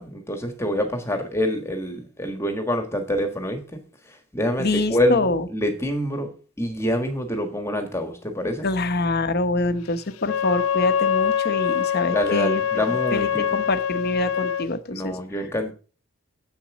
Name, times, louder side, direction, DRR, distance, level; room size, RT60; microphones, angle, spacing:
voice 1, 0.0-3.8 4.0-6.3 6.6-8.7 12.1-13.6 14.9-15.7, equal, 15° left, 1.5 m, -26 dB
voice 2, 4.6-5.5 8.6-12.6 12.9-15.2, left 2 dB, 50° left, 0.9 m, -25 dB
Wind instrument woodwind instrument, 10.2-14.7, left 8 dB, 80° left, 0.5 m, -24 dB
8.2 x 7.2 x 6.0 m
head